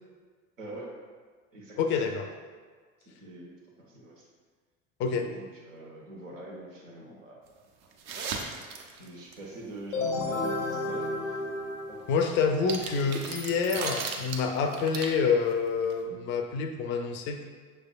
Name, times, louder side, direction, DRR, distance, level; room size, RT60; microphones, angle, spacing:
voice 1, 0.6-1.0 1.5-2.1 3.0-4.3 5.1-7.4 8.9-11.4 11.9-12.2, right 1 dB, 75° right, -2 dB, 1.0 m, -44 dB
voice 2, 1.8-2.3 5.0-5.3 12.1-17.4, left 5 dB, 30° left, 5 dB, 0.4 m, -27 dB
sound 1, 7.9-9.3 12.5-15.5 15.8-15.9, right 4 dB, 45° right, 0.6 m, -36 dB
sound 2, 9.9-12.6, left 2 dB, 80° left, 0.6 m, -32 dB
6.1 x 3.4 x 2.3 m, 1.6 s
figure-of-eight pair, 65°, 39 cm